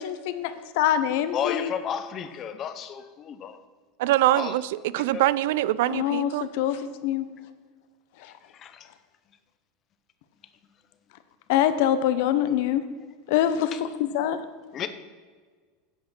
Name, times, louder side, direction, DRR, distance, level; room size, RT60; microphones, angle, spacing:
voice 1, 0.0-1.7 5.9-7.3 8.2-8.3 11.5-12.8 13.3-14.5, left 10 dB, 60° left, 12 dB, 0.8 m, -25 dB
voice 2, 1.3-3.6 4.4-4.5 5.1-5.2 8.6-8.9 14.7-14.9, left 8 dB, 25° left, 10 dB, 0.7 m, -32 dB
voice 3, 4.0-6.5, right 15 dB, 75° right, 19 dB, 0.3 m, -24 dB
9.8 x 7.5 x 5.7 m, 1.5 s
supercardioid pair, 170°, 0 cm